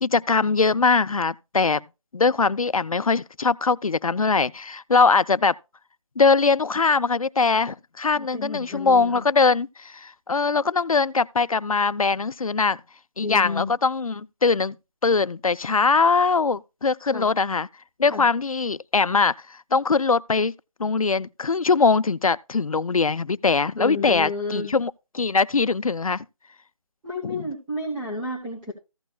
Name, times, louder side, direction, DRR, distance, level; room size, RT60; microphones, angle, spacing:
voice 1, 0.0-1.8 2.1-5.6 6.2-12.8 13.2-14.7 15.0-17.7 18.0-19.3 19.7-20.5 20.8-26.2 27.2-27.5, left 4 dB, 90° left, 0.5 m, -21 dB
voice 2, 8.2-9.2 13.2-13.7 17.1-17.3 18.1-18.3 23.8-24.7 27.0-28.7, left 2 dB, 5° right, 0.9 m, -31 dB
15.0 x 6.3 x 2.3 m
figure-of-eight pair, 165°, 18 cm